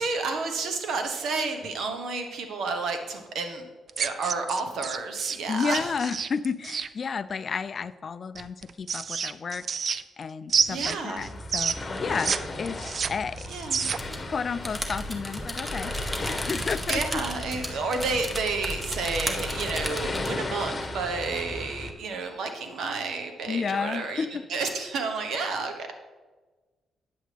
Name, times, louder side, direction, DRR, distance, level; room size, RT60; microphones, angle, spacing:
voice 1, 0.0-3.6 4.0-6.0 10.7-11.3 13.5-13.9 16.9-25.9, right 4 dB, 75° right, 6 dB, 1.1 m, -31 dB
sound 1, 3.9-6.9 8.4-10.2 10.5-12.4 12.7-14.2, right 6 dB, 50° right, 0.3 m, -29 dB
voice 2, 5.5-9.9 10.2-13.5 14.3-17.0 23.5-24.4, left 5 dB, 50° left, 15 dB, 0.3 m, -32 dB
sound 2, 11.2-21.9, left 2 dB, 30° left, 1.2 m, -36 dB
sound 3, 13.9-20.3, equal, 10° right, 1.1 m, -34 dB
9.1 x 7.6 x 3.4 m, 1.3 s
cardioid pair, 75°, 0 cm